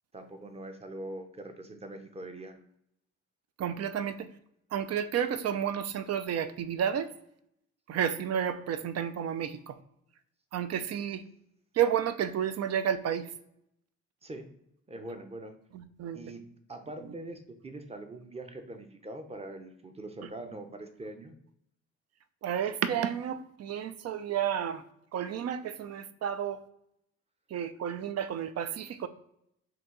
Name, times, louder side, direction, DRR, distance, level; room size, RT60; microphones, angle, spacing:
voice 1, 0.1-2.6 14.2-14.5 14.9-15.5 16.1-16.4 16.7-21.4, right 2 dB, 20° right, 7 dB, 0.7 m, -43 dB
voice 2, 3.6-4.3 4.7-7.1 7.9-9.8 10.5-11.2 11.7-13.3 15.7-16.2 22.4-24.8 25.1-26.6 27.5-29.1, right 9 dB, 55° right, 12 dB, 0.5 m, -31 dB
4.3 x 2.8 x 3.9 m, 0.76 s
cardioid pair, 90°, 30 cm